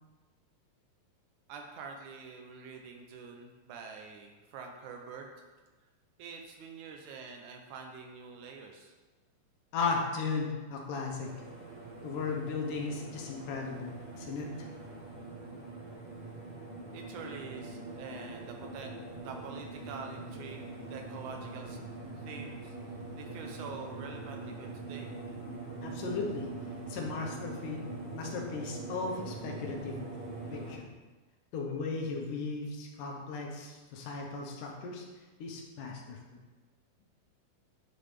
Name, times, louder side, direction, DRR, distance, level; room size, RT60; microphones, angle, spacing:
voice 1, 1.5-5.3 6.2-8.9 16.9-18.9 19.2-21.8 22.3-22.8 23.2-25.1, right 5 dB, 80° right, 3 dB, 1.9 m, -46 dB
voice 2, 9.7-11.3 12.0-14.7 25.8-26.5 26.9-27.9 28.1-30.0 30.5-30.9 31.5-35.1 35.4-36.4, left 4 dB, 75° left, 0 dB, 2.4 m, -36 dB
sound 1, 11.2-30.7, right 3 dB, 45° right, 1.1 m, -43 dB
9.5 x 4.0 x 3.3 m, 1.2 s
omnidirectional pair, 3.8 m